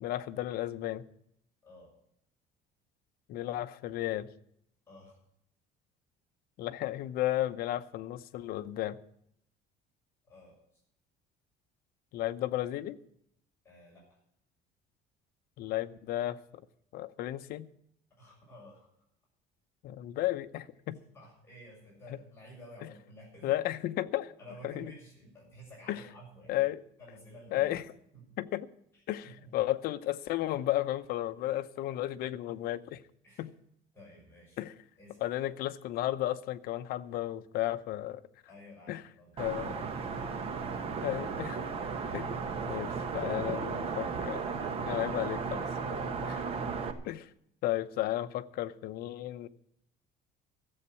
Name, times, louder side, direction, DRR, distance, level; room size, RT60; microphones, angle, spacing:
voice 1, 0.0-1.0 3.3-4.3 6.6-9.0 12.1-13.0 15.6-16.4 16.9-17.7 19.8-21.0 22.8-22.9 23.4-24.3 24.6-24.9 25.9-26.0 26.5-26.8 27.5-27.8 28.4-28.7 29.1-33.0 33.4-33.5 34.6-34.7 35.2-38.2 38.9-39.0 39.4-39.8 41.0-41.7 42.1-42.3 42.7-44.4 44.8-46.6 47.0-47.3 47.6-49.5, left 14 dB, 60° left, 11 dB, 0.8 m, -33 dB
voice 2, 4.9-5.2 10.3-10.6 13.6-14.2 18.1-18.9 21.1-23.6 24.4-26.7 27.0-27.7 28.1-28.3 29.2-29.5 33.2-33.4 33.9-34.6 35.0-35.2 38.5-40.5 43.1-43.8, right 1 dB, 15° left, -5 dB, 6.9 m, -53 dB
sound 1, 39.4-46.9, right 5 dB, 35° right, 1.2 m, -35 dB
14.0 x 8.0 x 8.3 m, 0.73 s
cardioid pair, 175°, 18 cm